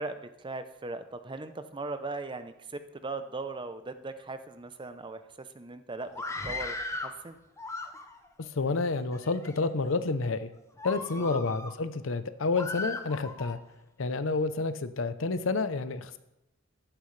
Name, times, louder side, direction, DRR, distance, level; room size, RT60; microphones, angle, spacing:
voice 1, 0.0-7.4 11.1-11.6, right 3 dB, 25° right, 10 dB, 0.7 m, -39 dB
Screaming, 6.1-7.2 7.6-8.3 9.0-9.6 10.1-10.3 10.8-11.8 12.5-13.6, left 3 dB, 15° left, 0.8 m, -37 dB
voice 2, 8.4-10.5 10.8-13.6 14.0-16.2, left 3 dB, 70° left, 12 dB, 0.7 m, -29 dB
14.0 x 12.0 x 3.3 m, 0.92 s
head